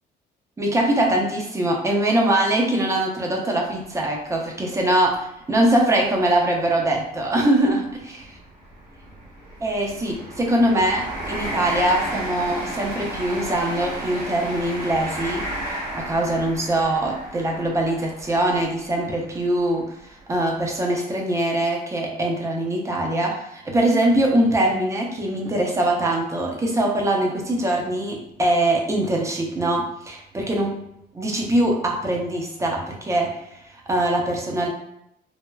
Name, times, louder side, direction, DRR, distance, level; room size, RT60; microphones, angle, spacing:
voice 1, 0.6-8.2 9.6-30.7 31.1-33.3 33.9-34.7, right 1 dB, 15° right, 0 dB, 0.5 m, -22 dB
sound 1, 3.7-3.8 4.4-4.5 5.7-5.8 6.0-6.2 6.9-19.6 20.2-20.4, right 1 dB, 80° right, 0.9 m, -33 dB
3.2 x 2.1 x 2.2 m, 0.78 s
cardioid pair, 110°, 17 cm